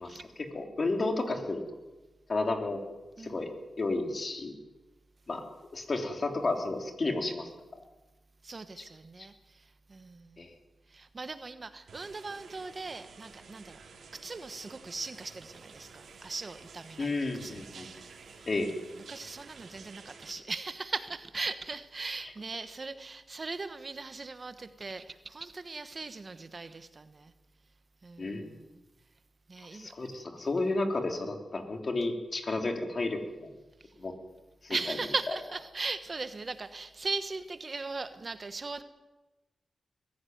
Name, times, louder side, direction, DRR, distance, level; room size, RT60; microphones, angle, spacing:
voice 1, 0.0-1.6 2.3-2.8 3.2-3.5 3.8-4.5 5.3-5.4 5.7-7.5 10.4-10.5 17.0-17.9 18.5-18.7 28.2-28.4 29.7-33.5 34.0-34.1 34.6-34.8, left 2 dB, 45° left, 5 dB, 3.2 m, -32 dB
voice 2, 3.2-3.5 8.4-10.5 10.9-13.8 14.1-18.0 18.3-18.5 19.0-27.3 28.0-28.8 29.5-29.9 33.8-33.9 34.7-38.8, right 3 dB, 40° right, 11 dB, 1.2 m, -39 dB
sound 1, 11.9-20.3, right 5 dB, 80° right, 3.7 m, -51 dB
22.0 x 15.0 x 9.4 m, 1.1 s
wide cardioid pair, 90°, 0 cm